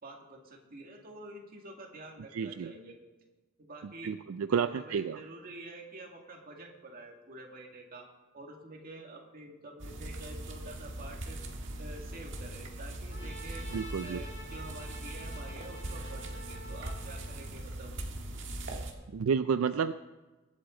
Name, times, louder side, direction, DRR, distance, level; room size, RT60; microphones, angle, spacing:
voice 1, 0.0-2.9 3.6-4.1 4.5-8.1 8.3-11.4 11.8-13.7 14.0-17.9, right 2 dB, 45° right, 1 dB, 2.1 m, -48 dB
voice 2, 2.3-2.7 3.8-5.2 13.7-14.2 19.1-19.9, right 6 dB, 75° right, 11 dB, 0.4 m, -30 dB
sound 1, 9.8-18.9, right 1 dB, 60° right, 1.7 m, -40 dB
Trumpet, 13.1-17.5, equal, 60° left, 2.1 m, -49 dB
23.0 x 8.2 x 3.9 m, 1.2 s
head